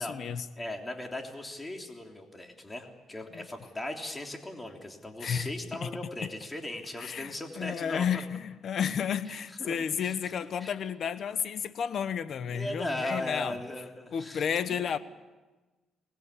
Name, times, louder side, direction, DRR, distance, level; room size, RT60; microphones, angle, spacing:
voice 1, 0.0-0.4 3.3-3.4 5.2-5.5 5.8-5.9 7.0-13.6 14.1-15.0, left 7 dB, 60° left, 1.2 m, -32 dB
voice 2, 0.5-8.0 9.6-10.7 12.5-14.8, left 1 dB, 15° left, 3.4 m, -38 dB
24.0 x 20.5 x 8.5 m
cardioid pair, 90°, 0 cm